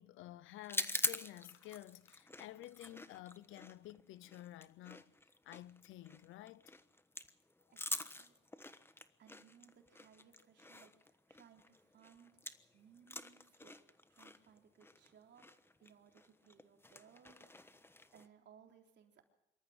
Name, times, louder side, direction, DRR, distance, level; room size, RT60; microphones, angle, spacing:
voice 1, 0.0-5.1 5.4-6.7, left 15 dB, 90° left, 0.7 m, -52 dB
sound 1, 0.6-12.7 13.0-18.3, left 2 dB, 10° left, 1.2 m, -45 dB
voice 2, 7.7-8.4 9.2-12.4 12.7-13.8 14.1-15.4 15.8-19.2, right 7 dB, 60° right, 3.8 m, -64 dB
25.0 x 13.5 x 8.0 m
cardioid pair, 90°, 20 cm